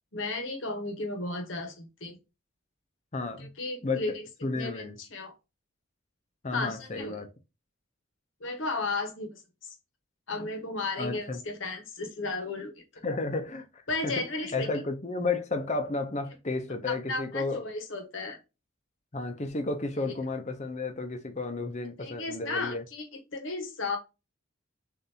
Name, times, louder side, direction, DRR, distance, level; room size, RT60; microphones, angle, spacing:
voice 1, 0.1-2.2 3.4-4.3 4.5-5.3 6.5-7.2 8.4-9.4 10.3-13.0 13.9-14.7 16.9-18.4 22.0-23.1 23.3-24.0, left 3 dB, 65° left, 1.1 m, -34 dB
voice 2, 3.1-3.5 3.8-5.0 6.4-7.3 11.0-11.4 13.0-13.7 14.0-14.2 14.5-17.6 19.1-22.8, left 3 dB, 35° left, 0.6 m, -32 dB
6.7 x 2.6 x 2.8 m
head